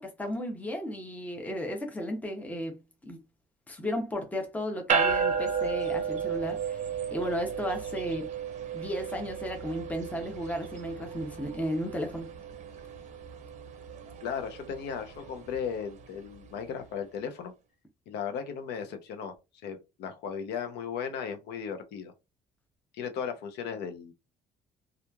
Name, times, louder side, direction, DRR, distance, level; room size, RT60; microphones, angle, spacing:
voice 1, 0.0-2.8 3.0-3.2 3.7-8.3 8.7-12.3, equal, 10° left, 0.7 m, -34 dB
sound 1, 4.9-16.5, right 6 dB, 45° right, 0.6 m, -34 dB
voice 2, 14.2-17.5 18.1-19.3 19.6-22.1 22.9-24.1, left 7 dB, 80° left, 0.6 m, -36 dB
2.9 x 2.4 x 2.2 m
cardioid pair, 110°, 17 cm